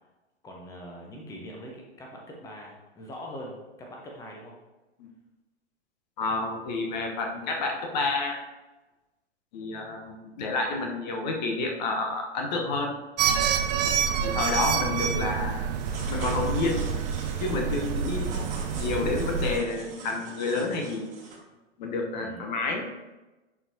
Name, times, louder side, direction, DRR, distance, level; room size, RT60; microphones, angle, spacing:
voice 1, 0.4-4.5 14.0-14.3 18.2-18.5 22.2-22.5, equal, 10° left, -1 dB, 0.8 m, -43 dB
voice 2, 6.2-8.4 9.5-13.0 14.2-15.7 16.1-16.9 17.4-18.4 18.7-21.1 21.8-22.9, left 3 dB, 40° left, 3 dB, 0.9 m, -29 dB
sound 1, 13.2-19.6, right 7 dB, 35° right, 0.6 m, -28 dB
sound 2, 15.7-21.4, right 3 dB, 20° right, 1.6 m, -42 dB
10.5 x 4.5 x 2.7 m, 1.1 s
figure-of-eight pair, 105°, 35 cm